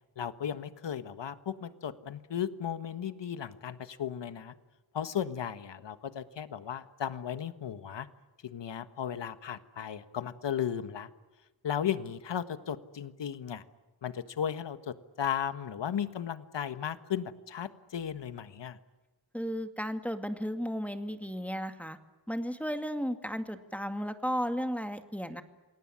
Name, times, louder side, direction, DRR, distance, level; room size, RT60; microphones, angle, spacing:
voice 1, 0.2-4.5 4.9-8.1 8.4-11.1 11.6-13.6 14.0-18.8, left 9 dB, 75° left, 12 dB, 1.5 m, -35 dB
voice 2, 19.3-22.0 22.3-25.4, equal, 5° left, 7 dB, 2.3 m, -34 dB
27.5 x 19.0 x 9.9 m, 1.1 s
cardioid pair, 60°, 43 cm